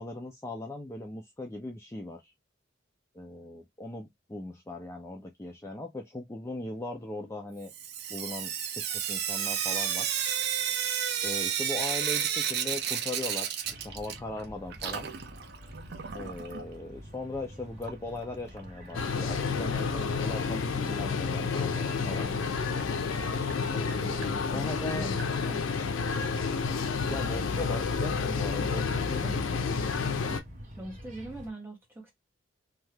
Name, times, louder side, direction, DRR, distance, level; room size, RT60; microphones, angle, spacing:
voice 1, 0.0-2.3 3.1-7.7 8.1-10.2 11.2-15.1 16.1-22.3 23.7-25.1 27.1-29.6, left 2 dB, 15° left, 0.3 m, -39 dB
Sink (filling or washing) / Drip, 7.7-14.4 14.7-16.6 17.8-17.9 18.2-18.3 18.6-18.7 21.6-21.7 22.2-22.3 22.8-22.9 23.5-23.6 24.2-24.3 25.2-25.3, right 9 dB, 55° right, 0.4 m, -32 dB
sound 1, 13.6-31.5, equal, 40° right, 0.9 m, -47 dB
sound 2, 18.9-30.4, left 5 dB, 85° left, 0.5 m, -30 dB
voice 2, 24.5-25.2 25.4-26.4 30.7-32.1, right 1 dB, 10° right, 1.1 m, -43 dB
2.7 x 2.3 x 3.2 m
head